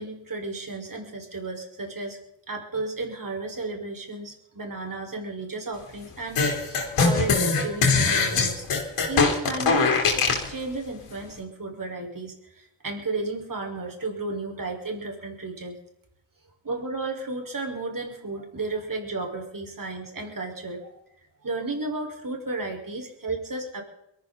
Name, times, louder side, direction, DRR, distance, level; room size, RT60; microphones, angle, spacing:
voice 1, 0.0-2.2 2.5-8.7 9.1-10.0 10.5-15.8 16.6-21.0 21.4-23.8, right 3 dB, 40° right, 2 dB, 5.2 m, -33 dB
sound 1, 6.3-10.5, left 4 dB, 85° left, 4.2 m, -22 dB
22.5 x 14.5 x 4.1 m, 0.81 s
cardioid pair, 65°, 49 cm